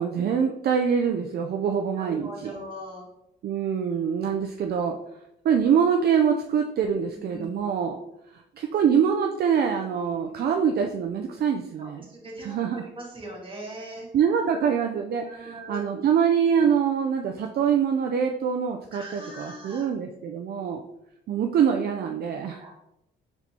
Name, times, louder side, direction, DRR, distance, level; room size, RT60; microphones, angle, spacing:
voice 1, 0.0-2.5 3.4-5.0 5.4-8.0 8.3-12.0 12.4-12.8 14.1-20.8 21.3-22.6, right 7 dB, 55° right, 3 dB, 0.4 m, -24 dB
voice 2, 1.9-3.1 7.1-7.6 11.8-14.1 15.2-15.8 18.9-19.9 22.6-22.7, right 1 dB, 25° right, -3 dB, 1.7 m, -40 dB
4.5 x 4.2 x 2.8 m, 0.83 s
cardioid pair, 90°, 20 cm